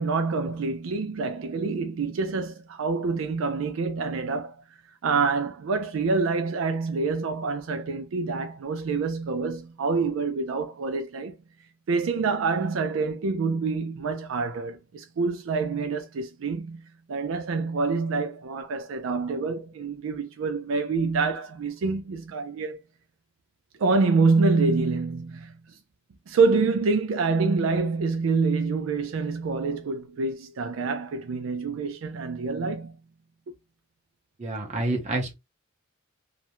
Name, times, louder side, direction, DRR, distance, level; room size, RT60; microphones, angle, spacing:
voice 1, 0.0-11.4 11.9-16.8 17.1-22.8 23.8-25.8 26.3-33.0 33.5-33.6, right 4 dB, 75° right, 0.4 m, -26 dB
voice 2, 34.4-35.3, right 2 dB, 35° right, 0.7 m, -28 dB
2.4 x 2.0 x 2.9 m
head